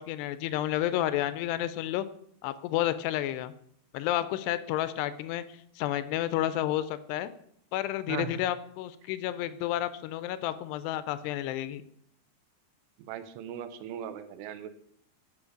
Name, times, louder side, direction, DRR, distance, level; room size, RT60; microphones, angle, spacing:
voice 1, 0.0-2.1 2.4-3.5 3.9-7.3 7.7-11.8, left 13 dB, 85° left, 13 dB, 2.6 m, -31 dB
voice 2, 13.1-14.7, right 10 dB, 85° right, 11 dB, 2.9 m, -38 dB
9.8 x 6.6 x 5.1 m, 0.67 s
omnidirectional pair, 4.9 m